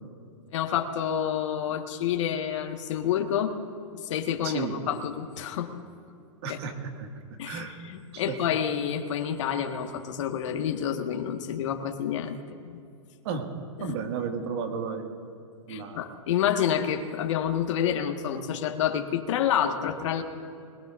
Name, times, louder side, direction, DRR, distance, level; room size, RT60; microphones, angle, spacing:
voice 1, 0.5-3.5 4.0-5.7 6.5-6.6 7.4-12.4 13.8-14.0 15.7-20.2, left 9 dB, 65° left, 4 dB, 1.6 m, -28 dB
voice 2, 4.4-4.8 6.4-7.1 7.4-7.8 8.1-8.3 13.2-13.4 13.8-15.1 15.7-16.0, right 6 dB, 50° right, 3 dB, 2.1 m, -33 dB
25.5 x 19.0 x 2.6 m, 2.5 s
hypercardioid pair, 145°, 17 cm